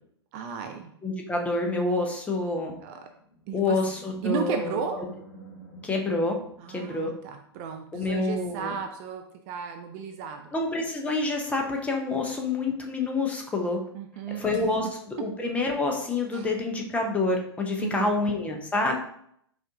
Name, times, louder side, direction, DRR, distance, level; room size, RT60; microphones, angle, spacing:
voice 1, 0.3-0.9 2.8-3.1 3.5-3.8 4.2-5.0 6.6-10.5 13.9-14.4 16.3-16.5 17.8-18.1, right 6 dB, 35° right, 7 dB, 0.4 m, -34 dB
voice 2, 1.0-2.7 3.5-4.7 5.8-6.4 6.7-7.1 7.9-8.7 10.5-13.8 14.4-19.0, left 2 dB, 10° left, 1 dB, 0.7 m, -27 dB
Animal, 3.0-7.4, right 1 dB, 45° left, 1.2 m, -48 dB
5.1 x 2.5 x 3.6 m, 0.69 s
figure-of-eight pair, 105°, 14 cm